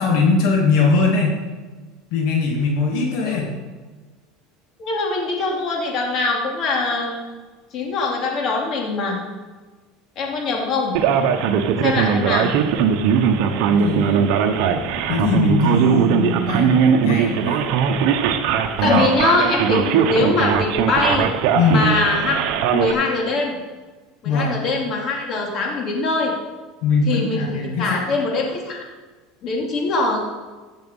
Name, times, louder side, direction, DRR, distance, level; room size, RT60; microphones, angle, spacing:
voice 1, 0.0-1.4 2.1-3.5 11.8-11.9 13.7-14.3 15.1-17.6 18.8-19.0 21.5-21.9 24.2-24.5 26.8-28.0, left 4 dB, 70° left, 0 dB, 2.2 m, -20 dB
voice 2, 4.8-7.3 7.7-9.2 10.2-11.0 11.8-12.5 18.8-21.3 21.7-22.3 22.7-23.5 24.2-26.3 27.1-28.9 29.4-30.2, left 3 dB, 40° left, 0 dB, 2.6 m, -22 dB
Male speech man speaking, 10.9-22.9, right 7 dB, 65° right, 1.1 m, -19 dB
15.0 x 6.4 x 5.6 m, 1.3 s
supercardioid pair, 140°, 0 cm